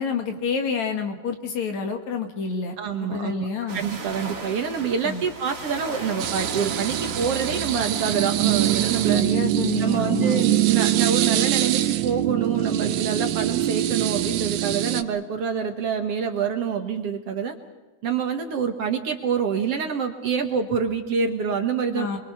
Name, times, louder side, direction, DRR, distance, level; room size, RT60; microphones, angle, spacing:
voice 1, 0.0-2.8 3.0-3.8 5.0-5.2 9.1-10.5 21.9-22.2, left 5 dB, 65° left, 5 dB, 3.3 m, -28 dB
voice 2, 2.8-3.5 3.7-9.2 9.8-17.6 18.0-22.1, right 6 dB, 55° right, 5 dB, 2.1 m, -26 dB
sound 1, 3.7-9.1, right 3 dB, 30° right, 2.0 m, -36 dB
sound 2, 6.2-15.0, right 13 dB, 85° right, 2.4 m, -23 dB
28.5 x 23.0 x 5.7 m, 1.2 s
omnidirectional pair, 3.6 m